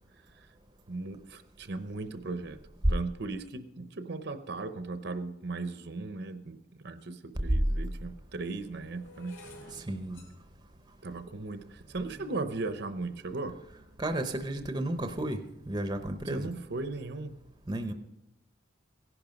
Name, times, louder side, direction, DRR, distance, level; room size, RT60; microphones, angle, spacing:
voice 1, 0.9-2.6 2.9-6.6 6.8-9.4 11.0-13.5 16.3-17.4, right 3 dB, 55° right, 10 dB, 0.8 m, -37 dB
sound 1, 7.0-7.1 7.9-14.0 14.7-15.0 15.3-15.7, equal, 65° left, 3.1 m, -54 dB
voice 2, 9.9-10.2 14.0-15.4 15.7-16.5 17.7-17.9, right 1 dB, 20° right, 7 dB, 0.7 m, -33 dB
16.0 x 11.0 x 5.2 m, 0.89 s
head